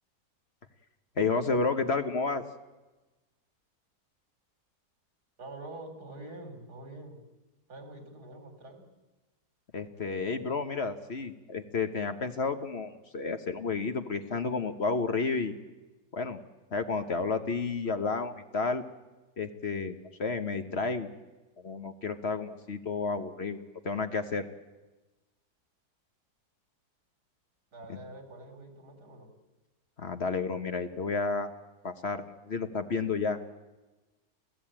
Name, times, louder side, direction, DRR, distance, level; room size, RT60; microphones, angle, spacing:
voice 1, 1.2-2.4 9.7-15.5 16.1-16.4 16.7-18.8 19.4-21.1 21.6-23.6 23.8-24.5 27.9-28.0 30.0-31.5 31.8-33.4, left 4 dB, 45° left, 8 dB, 1.3 m, -31 dB
voice 2, 5.4-7.2 7.7-8.9 27.7-29.3, right 2 dB, 80° right, 7 dB, 3.9 m, -45 dB
28.5 x 16.5 x 8.8 m, 1.1 s
omnidirectional pair, 1.7 m